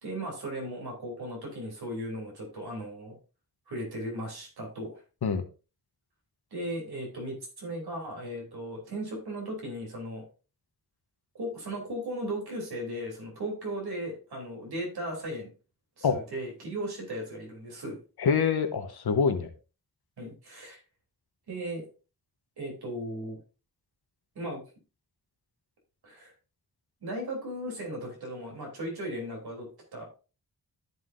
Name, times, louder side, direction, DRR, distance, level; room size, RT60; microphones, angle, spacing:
voice 1, 0.0-3.2 3.7-5.0 6.5-10.2 11.3-15.5 16.0-18.0 20.2-20.8 21.5-21.8 22.6-23.4 24.4-24.6 26.0-26.3 27.0-30.2, right 1 dB, 85° right, -1 dB, 3.5 m, -36 dB
voice 2, 18.2-19.5, left 6 dB, 80° left, 6 dB, 1.2 m, -25 dB
13.5 x 5.7 x 2.6 m, 0.33 s
wide cardioid pair, 100°, 37 cm